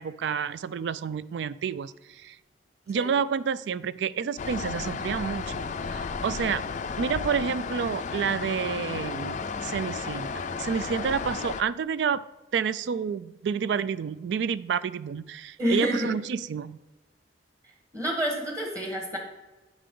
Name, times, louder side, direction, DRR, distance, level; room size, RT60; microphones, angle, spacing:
voice 1, 0.0-2.4 2.9-6.6 7.0-12.2 12.5-16.8, right 6 dB, 75° right, 17 dB, 0.3 m, -29 dB
sound 1, 4.4-11.6, left 5 dB, 40° left, 0.4 m, -33 dB
voice 2, 15.6-16.1 17.9-19.2, equal, 20° right, 1 dB, 1.4 m, -28 dB
10.0 x 5.1 x 3.8 m, 1.2 s
head